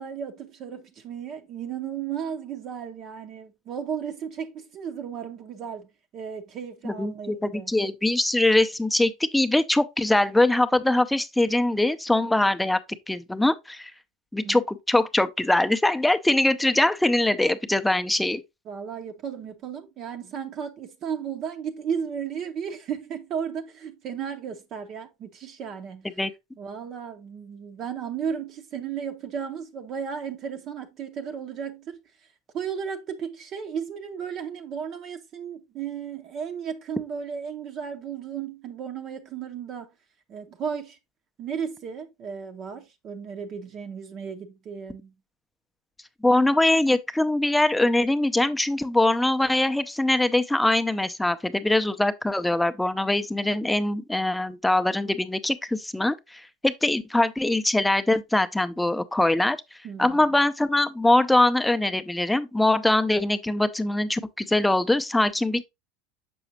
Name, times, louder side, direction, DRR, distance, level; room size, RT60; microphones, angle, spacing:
voice 1, 0.0-7.7 14.4-14.6 18.7-26.1 26.6-32.0 32.5-39.9 40.3-41.0 41.4-45.2 59.8-60.3, right 7 dB, 40° right, 0.7 m, -34 dB
voice 2, 6.8-12.8 13.1-13.9 14.3-18.4 26.2-26.3 46.2-59.6 60.0-65.7, left 1 dB, 5° left, 0.5 m, -22 dB
7.0 x 5.7 x 2.7 m
figure-of-eight pair, 75°, 0 cm